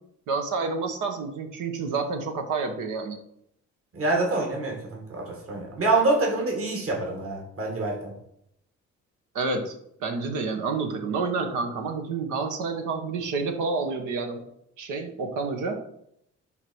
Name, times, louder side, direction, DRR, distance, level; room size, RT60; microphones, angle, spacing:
voice 1, 0.3-3.2 9.3-9.7 10.0-14.4 14.8-15.8, right 4 dB, 90° right, 4 dB, 1.5 m, -29 dB
voice 2, 3.9-8.1, right 2 dB, 45° right, -1 dB, 2.4 m, -26 dB
11.5 x 3.9 x 4.7 m, 0.74 s
cardioid pair, 90°, 30 cm